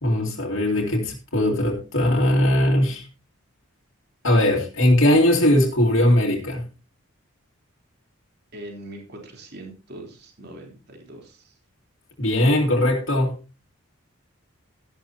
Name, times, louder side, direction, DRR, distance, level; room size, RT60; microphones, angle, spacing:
voice 1, 0.0-3.1 4.2-6.7 12.2-13.4, left 1 dB, 65° left, 2.3 m, -20 dB
voice 2, 8.5-11.5, right 1 dB, 50° right, 3.5 m, -41 dB
13.5 x 12.0 x 2.8 m
head